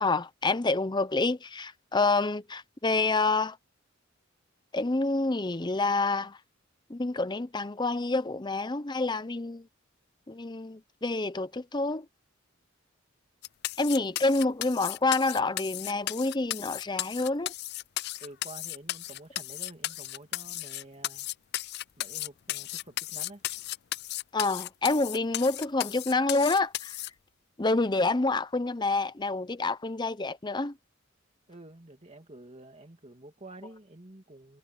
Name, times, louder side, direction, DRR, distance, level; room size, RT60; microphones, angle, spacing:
voice 1, 0.0-3.6 4.7-6.4 6.9-9.7 10.3-12.1 13.8-17.5 24.3-27.0 27.6-30.7, left 3 dB, 20° left, 0.7 m, -28 dB
sound 1, 13.4-27.1, left 16 dB, 55° left, 0.4 m, -35 dB
voice 2, 18.2-21.3 22.0-23.4 31.5-34.6, right 2 dB, 30° right, 2.5 m, -49 dB
head